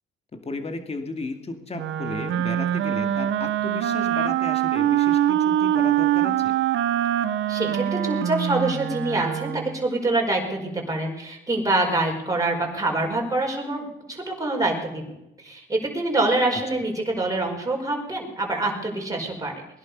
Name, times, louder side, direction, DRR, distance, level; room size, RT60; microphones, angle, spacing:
voice 1, 0.3-6.5 16.5-16.8, left 3 dB, 30° left, 6 dB, 2.2 m, -34 dB
Wind instrument woodwind instrument, 1.7-9.8, right 11 dB, 80° right, 0.9 m, -24 dB
voice 2, 7.5-19.5, right 2 dB, 15° right, 0 dB, 4.9 m, -25 dB
20.0 x 11.0 x 5.4 m, 0.89 s
cardioid pair, 90°, 20 cm